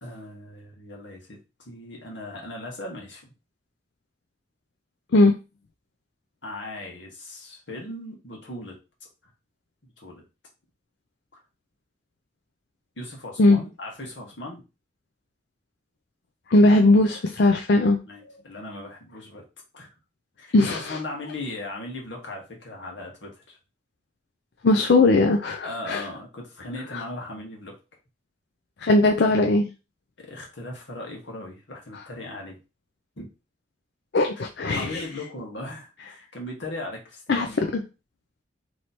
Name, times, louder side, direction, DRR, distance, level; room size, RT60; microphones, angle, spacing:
voice 1, 0.0-1.4 1.6-3.3 6.4-8.8 9.8-10.2 11.3-11.4 13.0-14.6 18.0-19.4 19.7-19.9 20.4-23.6 25.6-27.7 29.2-29.3 30.2-32.6 33.2-33.3 34.6-37.6, left 1 dB, 85° left, 0 dB, 1.6 m, -38 dB
voice 2, 16.5-18.0 20.5-20.9 24.6-26.0 28.8-29.6 34.1-35.0 37.3-37.5, left 2 dB, 65° left, 4 dB, 0.5 m, -19 dB
3.2 x 3.0 x 4.1 m, 0.29 s
head